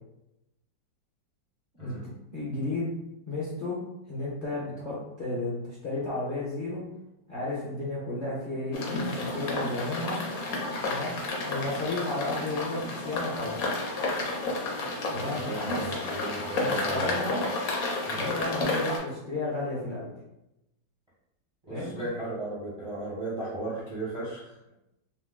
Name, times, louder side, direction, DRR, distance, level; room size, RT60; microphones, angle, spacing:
voice 1, 1.8-2.9 3.2-3.8 4.1-6.8 7.3-10.2 10.8-11.1 11.5-13.6 15.1-15.8 16.5-17.4 18.1-20.1 21.7-21.9, left 2 dB, 40° left, -9 dB, 0.8 m, -33 dB
sound 1, 8.7-19.0, left 2 dB, 60° left, 1.0 m, -31 dB
voice 2, 15.1-17.2 18.1-18.3 21.6-24.7, right 2 dB, 30° right, -8 dB, 0.6 m, -36 dB
3.0 x 2.2 x 3.6 m, 0.87 s
omnidirectional pair, 2.0 m